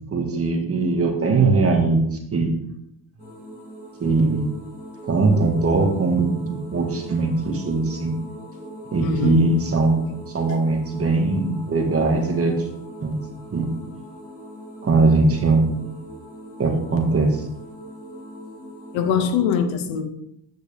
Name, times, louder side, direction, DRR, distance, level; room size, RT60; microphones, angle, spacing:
voice 1, 0.1-2.6 4.0-4.6 5.1-8.2 8.9-12.6 13.0-13.2 13.5-13.7 14.8-15.9 16.6-17.4, right 3 dB, 30° right, 1.8 m, -21 dB
sound 1, 3.2-19.3, right 1 dB, 15° left, 3.5 m, -40 dB
voice 2, 9.0-9.7 18.9-20.1, left 7 dB, 85° left, 1.0 m, -22 dB
9.1 x 6.4 x 3.5 m
cardioid pair, 95°, 45 cm